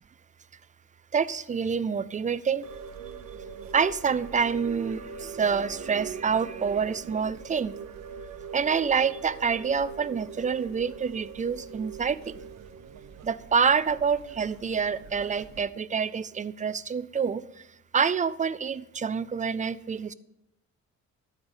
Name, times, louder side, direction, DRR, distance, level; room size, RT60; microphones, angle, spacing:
voice 1, 1.1-2.7 3.7-7.7 8.5-12.4 13.2-17.4 17.9-20.1, right 6 dB, 25° right, 17 dB, 0.4 m, -27 dB
sound 1, 2.6-15.6, right 6 dB, 65° right, 0.9 m, -43 dB
13.0 x 4.9 x 5.5 m, 0.86 s
cardioid pair, 90°, 30 cm